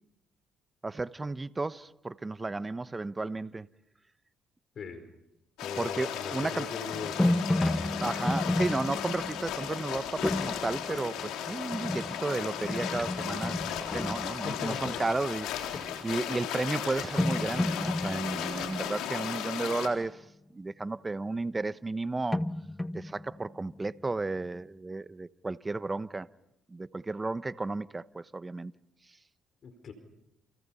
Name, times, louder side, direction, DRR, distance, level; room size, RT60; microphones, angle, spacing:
voice 1, 0.8-3.7 5.8-6.7 8.0-15.5 16.0-20.2 20.5-22.5 22.9-26.3 26.7-28.7, right 3 dB, 20° right, 1.0 m, -33 dB
sound 1, 5.6-19.9, left 9 dB, 85° left, 3.7 m, -36 dB
voice 2, 5.6-7.5 14.4-15.0 15.7-15.8 29.6-29.9, left 5 dB, 55° left, 4.4 m, -40 dB
sound 2, 6.9-15.2 15.6-16.0 16.8-16.9 17.2-19.7 22.3-24.1, left 1 dB, 10° left, 1.0 m, -32 dB
29.5 x 29.5 x 5.7 m
supercardioid pair, 75°, 0 cm